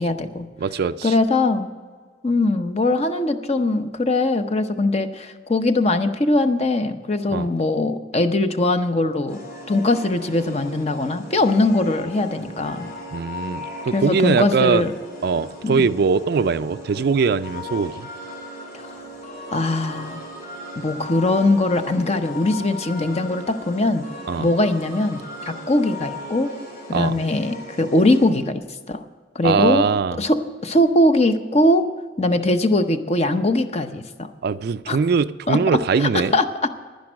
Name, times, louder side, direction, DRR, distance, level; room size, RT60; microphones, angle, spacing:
voice 1, 0.0-0.5 1.0-1.7 2.2-9.4 9.7-12.9 13.9-14.9 15.6-15.9 19.5-20.2 20.8-24.0 24.4-26.5 26.9-29.0 29.3-29.8 30.2-31.9 32.2-34.3 34.9-35.0 35.5-36.7, left 2 dB, 35° left, 9 dB, 0.7 m, -21 dB
voice 2, 0.6-1.2 7.3-7.5 13.1-14.9 15.2-18.1 24.3-24.5 26.9-27.2 29.4-30.2 34.4-36.4, right 5 dB, 55° right, 14 dB, 0.3 m, -21 dB
sound 1, 9.3-28.3, left 1 dB, 50° left, 3.9 m, -37 dB
10.5 x 10.5 x 6.2 m, 1.5 s
head